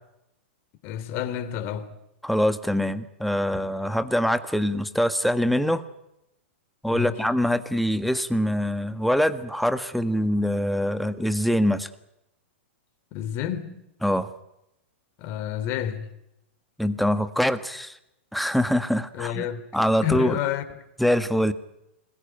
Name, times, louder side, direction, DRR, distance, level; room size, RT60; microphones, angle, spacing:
voice 1, 0.8-1.9 6.9-7.3 13.1-13.7 15.2-16.1 19.1-19.6 20.0-20.6, left 10 dB, 45° left, 3.3 m, -29 dB
voice 2, 2.2-5.8 6.8-11.9 14.0-14.3 16.8-17.9 18.3-19.4 19.7-20.3 21.0-21.5, equal, ahead, 1.5 m, -24 dB
27.5 x 21.0 x 9.2 m
hypercardioid pair, 110°, 6 cm